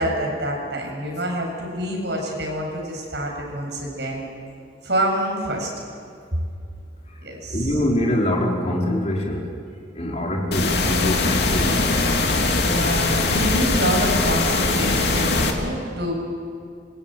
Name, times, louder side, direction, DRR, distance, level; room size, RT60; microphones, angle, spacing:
voice 1, 0.0-4.2 4.8-5.7 7.2-7.7 12.3-16.1, right 1 dB, 65° right, 0 dB, 8.0 m, -27 dB
voice 2, 7.5-9.4 10.0-11.8, left 1 dB, 35° left, -1 dB, 4.4 m, -23 dB
sound 1, 10.5-15.5, left 3 dB, 60° left, 2.9 m, -21 dB
26.5 x 24.0 x 9.3 m, 2.4 s
head